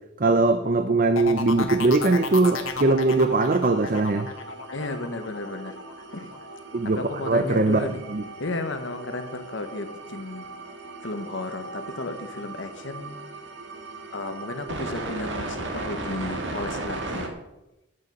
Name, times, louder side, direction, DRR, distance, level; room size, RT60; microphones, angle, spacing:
voice 1, 0.2-4.3 6.7-8.2, right 3 dB, 45° right, 9 dB, 0.6 m, -21 dB
sound 1, 1.2-6.8 7.2-7.6, left 4 dB, 90° left, 1.5 m, -33 dB
sound 2, 2.1-17.3, right 2 dB, 65° right, 1.7 m, -37 dB
voice 2, 4.7-5.8 6.1-6.3 6.8-8.0 8.4-10.4 11.0-13.2 14.1-17.3, left 2 dB, 70° left, 7 dB, 1.2 m, -33 dB
11.0 x 8.4 x 5.3 m, 0.94 s
head